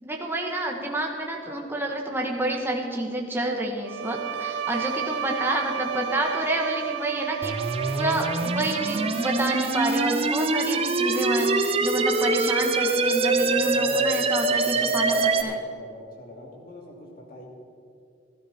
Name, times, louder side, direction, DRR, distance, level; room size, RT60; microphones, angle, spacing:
voice 1, 0.0-15.6, right 1 dB, 10° right, 0 dB, 1.3 m, -29 dB
Bowed string instrument, 3.9-9.7, right 9 dB, 80° right, 0.4 m, -32 dB
sound 1, 7.4-15.4, right 3 dB, 30° right, 0.7 m, -24 dB
voice 2, 13.3-17.5, left 1 dB, 50° left, -2 dB, 2.9 m, -44 dB
16.5 x 12.0 x 4.3 m, 2.4 s
head